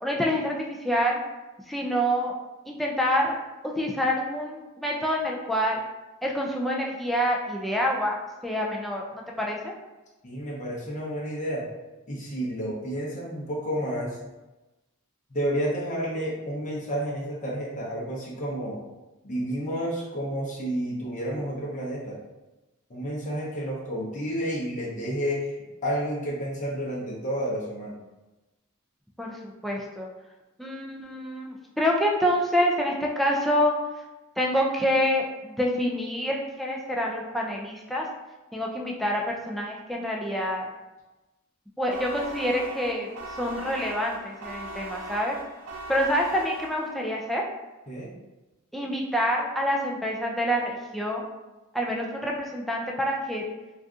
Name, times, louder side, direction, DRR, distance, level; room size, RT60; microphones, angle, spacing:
voice 1, 0.0-1.2 1.7-2.3 2.7-3.4 3.6-5.8 6.2-9.7 29.2-30.1 30.6-33.7 34.4-38.1 38.5-40.7 41.8-43.1 43.4-45.4 45.9-47.4 48.7-51.3 51.7-53.5, equal, ahead, -2 dB, 0.3 m, -27 dB
voice 2, 10.2-11.7 12.1-14.2 15.3-18.8 19.2-22.2 22.9-25.6 25.8-28.0 47.9-48.1, equal, 35° left, -5 dB, 0.7 m, -30 dB
sound 1, 41.9-47.2, right 1 dB, 75° right, 0.5 m, -39 dB
2.6 x 2.4 x 3.4 m, 1.1 s
head